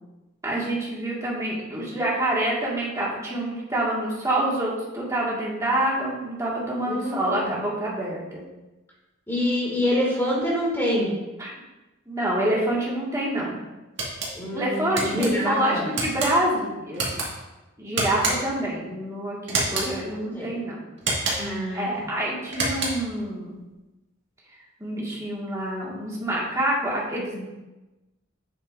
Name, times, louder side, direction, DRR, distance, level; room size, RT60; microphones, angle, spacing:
voice 1, 0.4-8.4 11.4-11.5 12.1-13.6 14.5-17.1 17.8-20.8 21.1-23.6 24.8-27.5, right 1 dB, 15° right, -5 dB, 1.8 m, -27 dB
voice 2, 6.9-7.5 9.3-11.1 14.3-15.8 20.0-20.5 21.4-21.9, left 1 dB, 10° left, -5 dB, 2.4 m, -26 dB
sound 1, 14.0-14.3 15.0-15.3 15.9-16.3 16.9-17.3 18.0-18.6 19.5-19.9 21.0-21.6 22.5-23.1, right 2 dB, 60° right, 1.9 m, -27 dB
8.1 x 7.1 x 2.6 m, 1.1 s
head